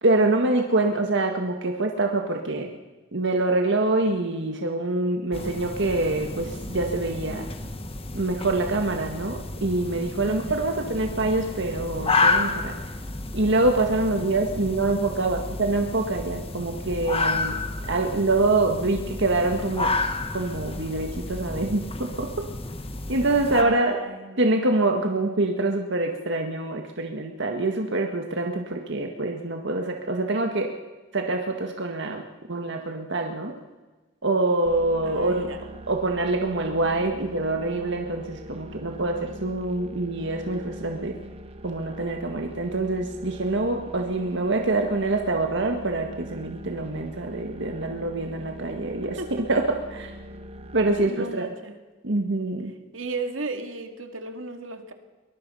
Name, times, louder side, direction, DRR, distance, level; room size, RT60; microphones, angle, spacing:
voice 1, 0.0-2.7 3.1-7.5 8.1-12.8 13.3-17.6 17.9-19.9 20.3-22.5 23.1-24.0 24.4-30.7 31.1-32.2 32.5-33.5 34.2-35.5 35.9-41.1 41.6-50.1 50.7-51.5 52.0-52.7, right 2 dB, 65° right, 3 dB, 1.8 m, -25 dB
sound 1, 5.3-23.6, left 3 dB, 30° left, 1.6 m, -31 dB
voice 2, 10.2-10.7 23.5-24.6 35.0-35.6 49.0-49.4 51.1-51.8 52.9-54.9, right 3 dB, 80° right, 6 dB, 2.2 m, -35 dB
sound 2, 34.6-51.1, right 1 dB, 30° right, 1.4 m, -42 dB
23.0 x 20.5 x 5.6 m, 1.2 s
head